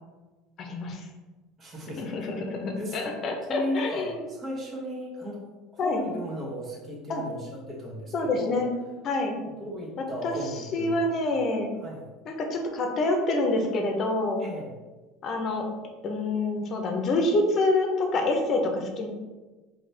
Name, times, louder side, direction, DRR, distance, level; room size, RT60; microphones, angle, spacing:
voice 1, 0.6-1.0 2.0-4.2 5.8-6.0 7.1-7.2 8.1-8.7 9.0-9.4 10.2-10.3 10.7-11.7 12.3-14.4 15.2-15.7 16.0-19.1, left 2 dB, 45° left, 3 dB, 0.8 m, -27 dB
voice 2, 1.6-2.1 2.7-3.0 3.5-8.6 9.3-11.1 11.8-12.0 14.4-14.8, left 1 dB, 30° right, -2 dB, 1.2 m, -35 dB
4.2 x 2.8 x 3.3 m, 1.2 s
supercardioid pair, 110°, 0 cm